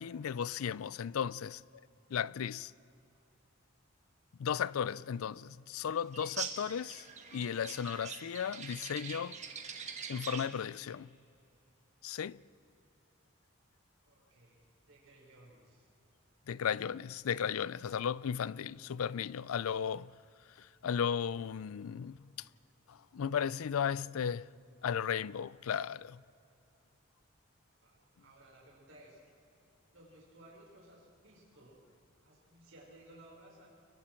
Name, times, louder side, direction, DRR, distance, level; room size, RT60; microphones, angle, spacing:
voice 1, 0.0-1.6 2.1-2.7 4.4-7.1 7.3-9.4 10.1-11.1 12.0-12.4 16.5-20.1 20.6-22.3 22.9-24.5 24.8-26.2, left 7 dB, 85° left, 0.4 m, -35 dB
sound 1, 6.1-10.6, right 6 dB, 35° right, 1.6 m, -44 dB
voice 2, 14.0-15.9 23.5-24.1 27.8-29.2 29.9-31.8 32.2-33.7, right 1 dB, 70° right, 4.7 m, -59 dB
29.5 x 22.5 x 4.5 m
head